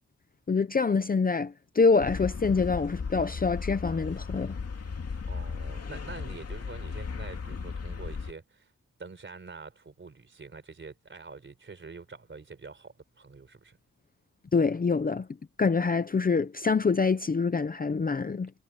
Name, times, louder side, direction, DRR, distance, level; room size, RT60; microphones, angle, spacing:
voice 1, 0.5-4.6 14.5-15.3 15.6-18.5, left 4 dB, 25° left, 0.6 m, -25 dB
sound 1, 2.0-8.3, left 5 dB, 45° left, 2.5 m, -36 dB
voice 2, 5.3-8.7 9.0-13.8, right 4 dB, 35° right, 4.1 m, -46 dB
wide cardioid pair, 170°, 33 cm